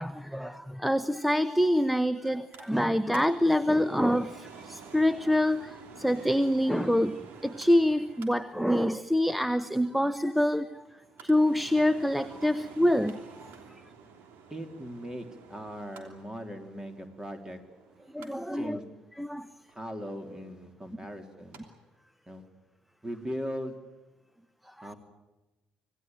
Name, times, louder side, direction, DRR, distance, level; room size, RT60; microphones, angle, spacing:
voice 1, 0.0-10.8 11.2-13.5 18.1-18.8 19.2-19.5, equal, ahead, 12 dB, 0.9 m, -26 dB
Mechanical fan, 2.2-21.6 22.0-22.1, right 6 dB, 65° right, 3.1 m, -51 dB
voice 2, 14.5-17.6 18.5-18.8 19.7-21.7 22.3-22.4 23.0-23.8 24.8-25.0, equal, 15° right, 6 dB, 3.7 m, -39 dB
26.0 x 17.0 x 9.3 m, 1.1 s
figure-of-eight pair, 50°, 4 cm